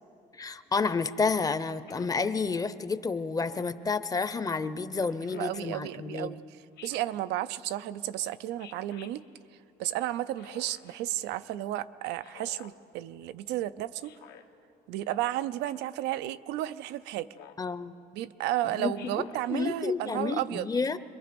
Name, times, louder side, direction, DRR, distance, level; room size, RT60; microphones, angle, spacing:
voice 1, 0.4-6.3 17.6-17.9 18.6-18.9 19.5-21.0, left 4 dB, 20° left, 13 dB, 0.7 m, -30 dB
Speech synthesizer, 1.9-2.2 3.4-3.9 5.2-5.6 6.8-7.2 8.6-9.1 10.4-10.9 12.2-12.7 14.0-14.4 15.6-16.0 17.3-17.7 18.9-19.4, left 9 dB, 75° left, 1.2 m, -51 dB
voice 2, 5.3-6.4 6.8-9.2 9.8-14.1 14.9-17.3 18.1-20.7, right 14 dB, 90° right, 15 dB, 0.6 m, -33 dB
26.5 x 21.5 x 5.2 m, 2.6 s
cardioid pair, 110°, 17 cm